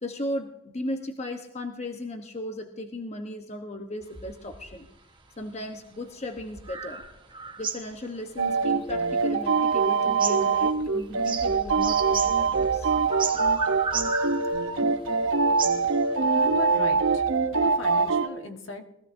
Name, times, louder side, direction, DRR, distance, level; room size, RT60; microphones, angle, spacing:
voice 1, 0.0-4.9 5.4-7.0 7.6-13.0, left 1 dB, 30° left, 4 dB, 0.9 m, -36 dB
sound 1, 4.0-5.5 6.1-9.8 10.1-16.6, right 5 dB, 25° right, 1.1 m, -35 dB
sound 2, 8.4-18.3, right 4 dB, 65° right, 0.9 m, -24 dB
voice 2, 16.2-17.2 17.6-18.9, left 2 dB, 65° left, 4 dB, 1.4 m, -37 dB
21.5 x 15.5 x 2.7 m, 0.87 s
head